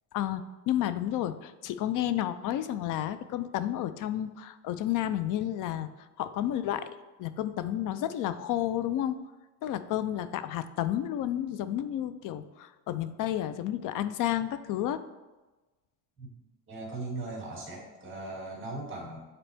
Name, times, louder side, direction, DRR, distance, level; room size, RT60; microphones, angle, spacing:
voice 1, 0.1-5.9 6.2-6.9 7.2-9.2 9.6-15.0, left 12 dB, 50° left, 13 dB, 0.5 m, -31 dB
voice 2, 16.7-19.2, right 2 dB, 30° right, -3 dB, 2.3 m, -39 dB
8.8 x 4.0 x 3.4 m, 1.2 s
cardioid pair, 135°, 41 cm